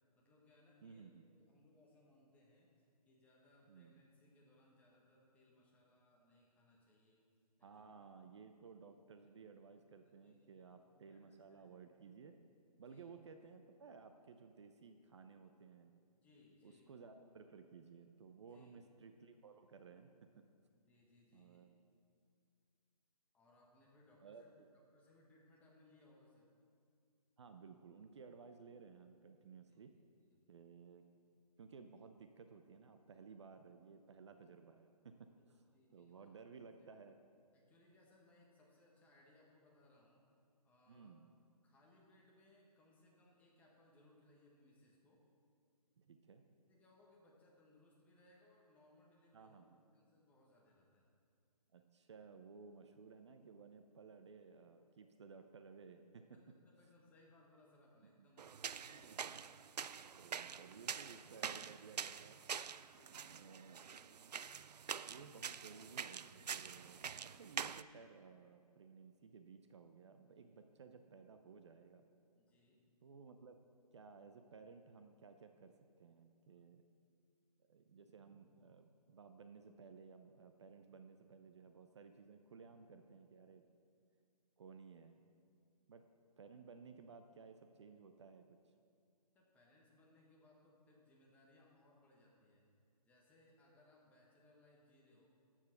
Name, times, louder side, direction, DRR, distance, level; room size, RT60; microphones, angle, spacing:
voice 1, 0.1-1.0 1.4-7.2 7.6-7.8 8.8-9.0 9.5-9.6 9.9-10.0 10.2-11.7 12.7-13.0 16.2-16.9 18.4-18.8 20.7-21.7 23.3-24.5 24.9-26.5 29.7-30.4 35.7-36.5 36.8-36.9 37.5-40.2 40.6-41.1 41.6-45.2 46.7-49.6 49.9-51.1 56.2-59.1 62.9-63.5 70.4-70.6 72.4-72.8 89.3-92.7 93.0-95.3, left 1 dB, 5° left, -3 dB, 1.3 m, -69 dB
voice 2, 0.8-1.3 3.6-4.0 7.6-12.4 12.8-15.9 16.6-20.3 21.3-21.7 24.2-24.7 27.4-29.9 30.5-31.0 31.6-35.6 35.9-37.2 40.9-41.3 46.0-46.4 49.3-49.8 51.7-56.2 58.2-58.3 59.0-59.2 60.2-62.4 63.1-63.8 65.0-72.0 73.0-73.6 73.9-75.7 76.0-76.9 77.7-83.6 84.6-85.2 85.9-86.0 86.4-88.5, right 5 dB, 45° right, 7 dB, 0.6 m, -57 dB
sound 1, 58.4-67.8, right 7 dB, 85° right, 0.4 m, -46 dB
13.0 x 7.4 x 5.9 m, 2.3 s
hypercardioid pair, 155°, 20 cm